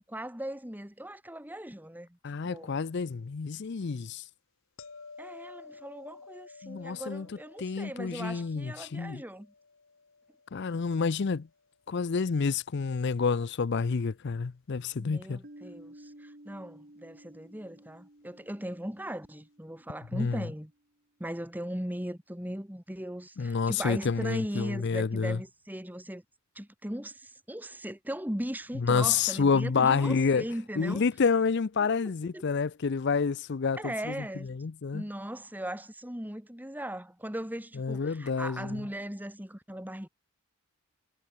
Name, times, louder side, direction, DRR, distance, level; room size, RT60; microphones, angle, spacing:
voice 1, 0.0-2.2 2.4-2.8 5.2-9.5 15.0-20.7 21.2-26.2 26.6-31.0 31.8-32.4 33.8-34.5 34.9-40.1, right 1 dB, 10° right, 2.1 m, -38 dB
voice 2, 2.2-4.2 6.6-7.3 7.6-9.2 10.5-11.5 11.9-15.4 20.1-20.4 23.4-25.4 28.8-30.4 30.8-34.1 34.5-35.0 37.8-38.8, left 5 dB, 50° left, 0.5 m, -28 dB
sound 1, 4.8-11.8 17.0-17.2, left 4 dB, 70° left, 1.6 m, -52 dB
Piano, 15.4-20.8, right 1 dB, 45° right, 2.8 m, -54 dB
head